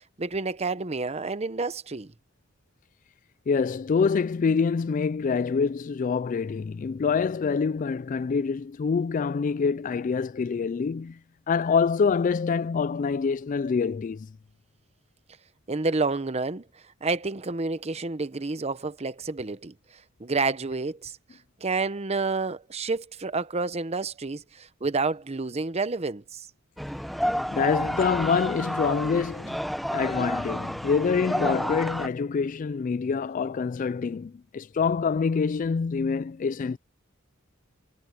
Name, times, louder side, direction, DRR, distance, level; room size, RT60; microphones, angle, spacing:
voice 1, 0.0-2.1 15.7-16.6 17.0-19.7 20.2-21.2 21.6-26.5, right 3 dB, 30° right, 0.8 m, -29 dB
voice 2, 3.5-11.2 11.5-14.3 27.5-29.6 29.9-36.8, left 5 dB, 40° left, 0.3 m, -26 dB
sound 1, 26.8-32.1, equal, ahead, 0.8 m, -30 dB
head